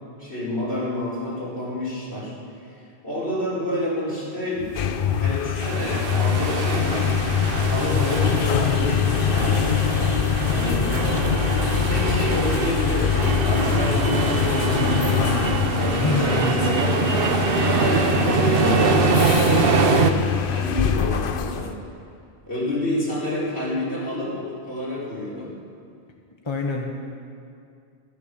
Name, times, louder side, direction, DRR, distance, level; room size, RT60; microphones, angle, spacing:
voice 1, 0.2-2.3 3.0-4.7 5.1-7.1 7.6-9.6 10.5-10.9 11.8-15.2 15.7-17.0 17.7-21.7 22.5-25.5, left 1 dB, 75° left, -8 dB, 5.3 m, -29 dB
sound 1, 4.6-21.7, left 8 dB, 60° left, 0.9 m, -24 dB
sound 2, 5.6-20.1, right 5 dB, 60° right, 1.0 m, -24 dB
voice 2, 16.0-16.7 26.4-26.9, left 3 dB, 25° left, 1 dB, 1.3 m, -25 dB
14.0 x 13.5 x 7.0 m, 2.4 s
omnidirectional pair, 1.1 m